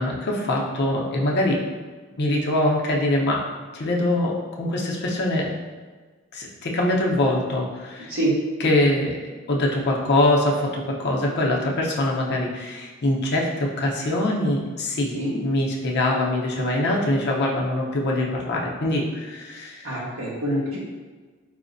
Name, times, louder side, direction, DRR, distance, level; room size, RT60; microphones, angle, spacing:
voice 1, 0.0-1.6 2.2-3.4 3.7-5.5 6.3-8.1 8.6-9.2 9.5-15.1 15.4-19.9, left 1 dB, 55° left, -2 dB, 0.6 m, -23 dB
voice 2, 19.8-20.8, right 1 dB, 85° right, -7 dB, 1.3 m, -25 dB
4.8 x 2.1 x 2.5 m, 1.4 s
head